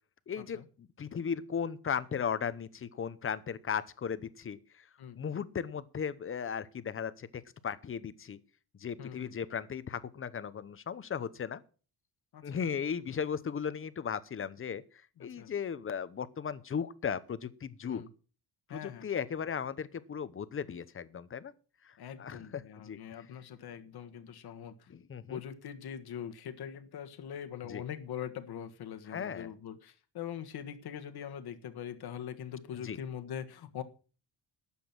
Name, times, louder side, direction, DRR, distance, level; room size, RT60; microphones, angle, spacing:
voice 1, 0.3-4.6 5.2-8.4 8.8-11.6 12.4-14.8 15.2-18.0 18.7-21.5 21.8-23.0 24.9-25.4 27.7-27.8 29.1-29.5 32.8-33.0, left 7 dB, 30° left, 15 dB, 0.8 m, -36 dB
voice 2, 9.0-9.3 12.3-12.4 15.2-15.5 17.9-18.1 18.7-19.0 22.0-24.9 25.3-33.8, left 9 dB, 55° left, 9 dB, 1.6 m, -42 dB
12.5 x 8.4 x 6.0 m, 0.38 s
cardioid pair, 155°, 45 cm